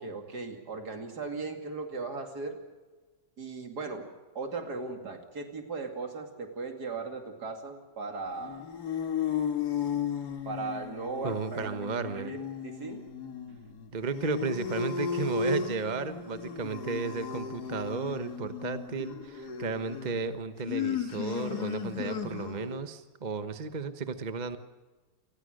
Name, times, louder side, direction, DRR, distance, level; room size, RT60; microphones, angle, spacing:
voice 1, 0.0-2.6 3.4-4.1 4.3-8.6 10.4-13.0, right 4 dB, 65° right, 5 dB, 3.1 m, -38 dB
sound 1, 8.3-22.8, left 7 dB, 65° left, 2.1 m, -35 dB
voice 2, 11.2-12.3 13.9-24.6, right 4 dB, 30° right, 9 dB, 1.0 m, -34 dB
28.5 x 20.0 x 6.5 m, 1.3 s
omnidirectional pair, 1.9 m